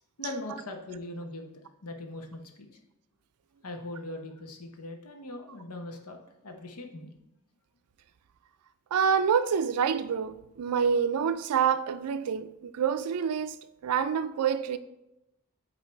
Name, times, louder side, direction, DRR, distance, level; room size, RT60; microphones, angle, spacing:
voice 1, 0.2-2.8 3.6-7.1, left 2 dB, 85° left, 0.9 m, -41 dB
voice 2, 8.9-14.8, right 7 dB, 90° right, 0.4 m, -27 dB
8.4 x 2.8 x 4.5 m
head